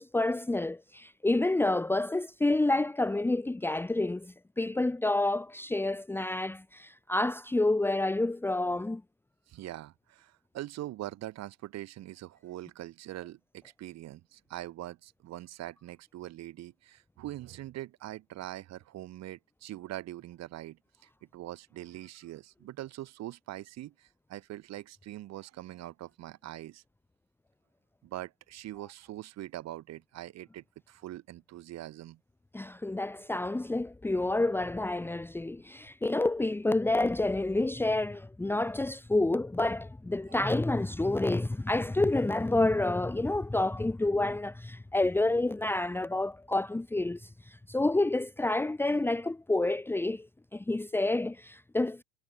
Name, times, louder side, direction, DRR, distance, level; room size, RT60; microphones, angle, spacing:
voice 1, 0.0-9.0 32.5-50.3 50.5-52.0, left 2 dB, 5° left, 1.2 m, -29 dB
voice 2, 9.5-26.8 28.0-32.2 40.3-40.4, right 14 dB, 45° right, 7.9 m, -43 dB
hypercardioid pair, 85°, 36 cm